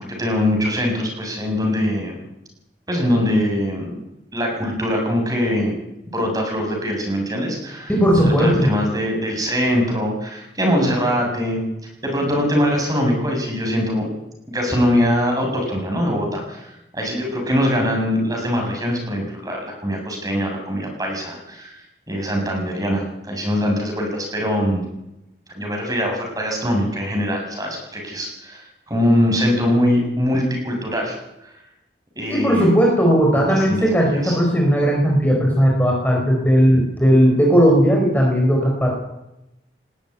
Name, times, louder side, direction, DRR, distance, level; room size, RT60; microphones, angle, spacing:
voice 1, 0.1-2.2 2.9-3.9 4.3-5.7 6.1-7.9 8.2-11.6 12.0-14.1 14.5-24.9 25.5-31.5 32.2-32.7 33.4-34.4, equal, 20° right, 1 dB, 6.9 m, -22 dB
voice 2, 7.9-8.7 32.3-38.9, equal, 10° left, -1 dB, 4.7 m, -16 dB
20.0 x 14.0 x 9.8 m, 0.89 s
head